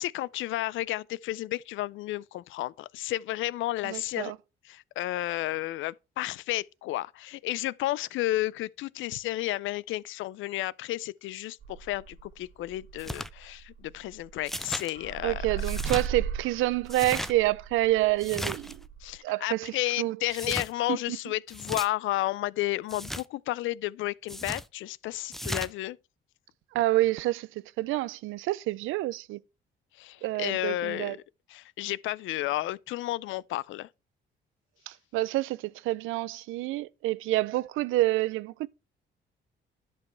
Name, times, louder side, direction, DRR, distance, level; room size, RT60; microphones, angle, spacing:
voice 1, 0.0-4.3 4.6-15.5 19.0-26.0 30.0-31.2 31.5-33.9, left 16 dB, 80° left, 0.4 m, -32 dB
voice 2, 3.8-4.4 15.2-18.8 19.2-20.2 20.9-21.0 26.7-29.4 30.2-31.2 34.9-38.7, right 17 dB, 90° right, 0.4 m, -28 dB
sound 1, 11.6-14.6 14.9-19.2, right 7 dB, 65° right, 1.5 m, -38 dB
sound 2, 13.0-13.3 14.5-14.9 15.6-16.1 16.9-17.3 18.2-18.8 20.3-20.7 21.5-21.9 22.9-23.2 24.3-24.7 25.3-25.7, equal, ahead, 0.4 m, -35 dB
10.5 x 5.3 x 4.4 m
cardioid pair, 90°, 20 cm